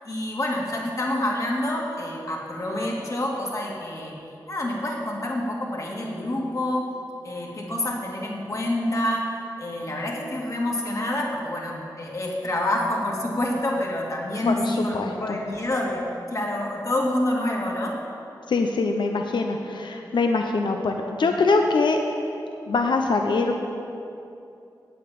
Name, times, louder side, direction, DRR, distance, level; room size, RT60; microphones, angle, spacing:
voice 1, 0.0-4.1 4.5-6.9 7.2-9.3 9.6-18.0, left 1 dB, 45° left, -2 dB, 2.2 m, -27 dB
voice 2, 14.5-15.4 18.5-22.0 22.7-23.6, left 3 dB, 90° left, 3 dB, 0.8 m, -23 dB
8.8 x 8.4 x 8.5 m, 2.7 s
wide cardioid pair, 90°, 8 cm